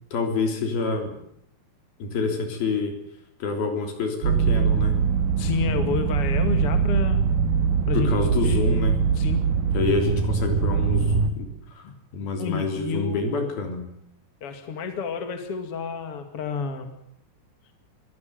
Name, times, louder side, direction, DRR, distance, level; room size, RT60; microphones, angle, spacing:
voice 1, 0.1-1.2 2.0-3.0 3.4-4.9 7.9-9.0 9.7-11.5 11.8-11.9 12.1-13.9, left 3 dB, 60° left, 5 dB, 5.2 m, -27 dB
sound 1, 4.2-11.3, right 6 dB, 60° right, 2.9 m, -22 dB
voice 2, 5.4-7.2 7.9-8.1 8.4-8.6 9.1-9.5 11.8-12.0 12.4-13.5 14.4-16.9, left 6 dB, 40° left, 7 dB, 2.7 m, -30 dB
24.5 x 16.0 x 9.4 m, 0.73 s
omnidirectional pair, 4.8 m